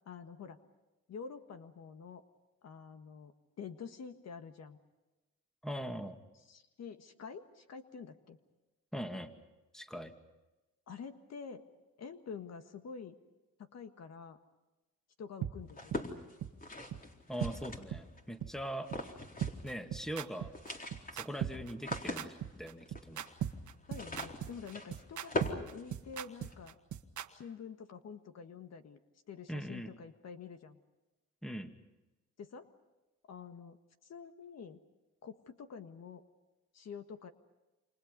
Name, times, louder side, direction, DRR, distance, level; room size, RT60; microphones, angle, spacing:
voice 1, 0.0-0.6 1.1-2.2 2.6-4.8 6.5-8.4 10.9-11.7 12.0-13.2 13.6-14.4 15.2-15.9 23.9-26.8 27.3-29.0 29.3-30.8 32.4-32.7 33.3-34.8 35.2-36.2 36.7-37.3, left 6 dB, 60° left, 8 dB, 1.7 m, -48 dB
voice 2, 5.6-6.2 8.9-9.3 9.7-10.1 17.3-18.9 19.6-20.5 21.1-23.3 29.5-29.9 31.4-31.7, equal, ahead, 6 dB, 2.3 m, -41 dB
sound 1, 15.4-15.5 15.9-16.0 16.4-16.5 16.9-17.0 17.4-17.5 17.9-18.0 18.4-18.5 18.9-19.0 19.4-27.3, right 10 dB, 75° right, 1.6 m, -38 dB
sound 2, 15.7-18.2 18.8-19.7 20.0-20.1 20.4-26.5, left 2 dB, 30° left, 4.1 m, -42 dB
29.0 x 27.0 x 5.4 m, 1.0 s
cardioid pair, 90°, 30 cm